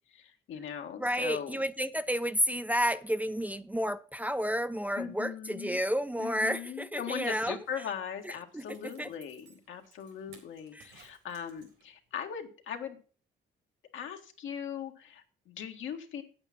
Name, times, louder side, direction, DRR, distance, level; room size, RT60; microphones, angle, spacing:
voice 1, 0.1-1.6 5.0-5.8 6.2-13.0 13.9-16.2, left 8 dB, 75° left, 1.7 m, -40 dB
voice 2, 1.0-7.6 8.2-9.1 10.7-10.9, equal, 10° right, 0.5 m, -31 dB
Zipper (clothing), 7.6-12.1 12.4-12.5, right 6 dB, 80° right, 4.0 m, -60 dB
8.8 x 8.3 x 5.9 m
cardioid pair, 90°, 20 cm